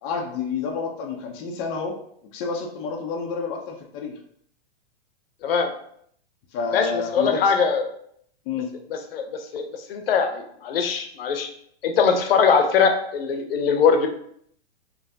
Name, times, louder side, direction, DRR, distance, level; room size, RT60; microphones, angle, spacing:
voice 1, 0.0-1.9 2.3-4.2 6.5-7.6 8.5-8.7, left 5 dB, 25° left, 1 dB, 0.4 m, -29 dB
voice 2, 6.7-7.9 8.9-9.3 9.5-11.5 11.8-14.1, left 6 dB, 70° left, 5 dB, 0.6 m, -21 dB
3.3 x 2.6 x 2.5 m, 0.66 s
hypercardioid pair, 130°, 31 cm